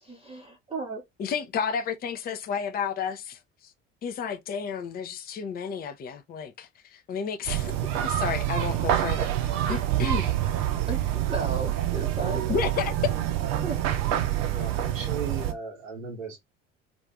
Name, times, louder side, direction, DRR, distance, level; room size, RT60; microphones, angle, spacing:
voice 1, 0.0-1.0 10.9-12.5 13.6-13.8, right 3 dB, 15° right, 0.7 m, -35 dB
voice 2, 1.2-3.4 4.0-7.8 8.0-10.4 12.5-12.9, left 6 dB, 25° left, 0.5 m, -32 dB
sound 1, 7.5-15.5, right 12 dB, 55° right, 0.7 m, -27 dB
voice 3, 14.5-16.4, right 4 dB, 85° right, 1.0 m, -36 dB
2.5 x 2.4 x 3.2 m
figure-of-eight pair, 60°, 38 cm